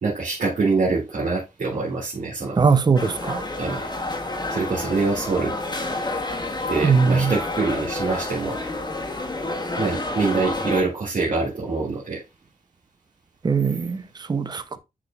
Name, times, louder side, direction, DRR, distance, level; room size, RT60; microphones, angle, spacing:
voice 1, 0.0-2.6 3.6-3.8 4.5-5.5 6.7-8.6 9.8-12.2, right 4 dB, 60° right, 1.9 m, -25 dB
voice 2, 2.6-3.4 6.8-7.3 13.4-14.0 14.3-14.6, right 5 dB, 30° right, 0.5 m, -20 dB
sound 1, 3.0-10.8, left 2 dB, 30° left, 1.4 m, -29 dB
9.8 x 4.5 x 2.2 m
wide cardioid pair, 160°, 15 cm